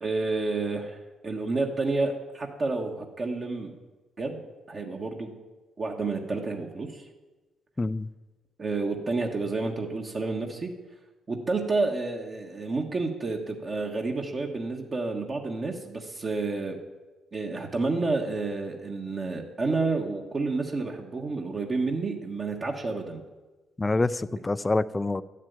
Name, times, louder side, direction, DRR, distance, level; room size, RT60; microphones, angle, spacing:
voice 1, 0.0-3.7 4.2-5.3 5.8-7.0 8.6-10.7 11.3-16.8 17.3-23.2, right 3 dB, 40° right, 1 dB, 1.5 m, -30 dB
voice 2, 7.8-8.1 23.8-25.2, left 2 dB, 20° left, 16 dB, 0.5 m, -26 dB
12.0 x 7.4 x 9.5 m, 1.2 s
cardioid pair, 90°, 0 cm